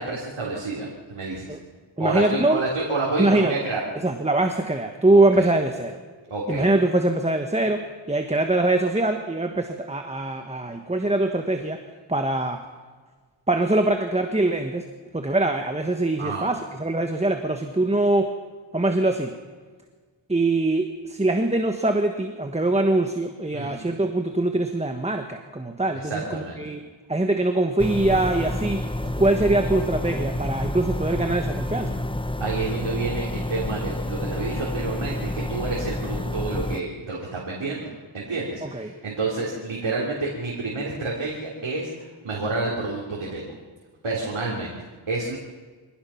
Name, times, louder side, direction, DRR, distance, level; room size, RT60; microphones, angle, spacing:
voice 1, 0.0-1.6 2.0-3.8 5.1-5.5 6.3-6.7 16.2-16.5 23.5-23.8 26.1-26.6 32.4-43.5 44.0-44.7 45.1-45.4, right 3 dB, 90° right, -4 dB, 3.7 m, -29 dB
voice 2, 2.0-2.6 3.2-3.6 3.9-6.0 6.5-11.8 12.1-12.6 13.5-14.8 15.1-18.4 18.7-19.3 20.3-26.8 27.1-32.0 38.6-38.9, right 2 dB, 15° right, 5 dB, 1.3 m, -23 dB
sound 1, 27.8-36.8, left 1 dB, 10° left, 0.7 m, -29 dB
25.0 x 18.0 x 5.9 m, 1.5 s
wide cardioid pair, 95°, 48 cm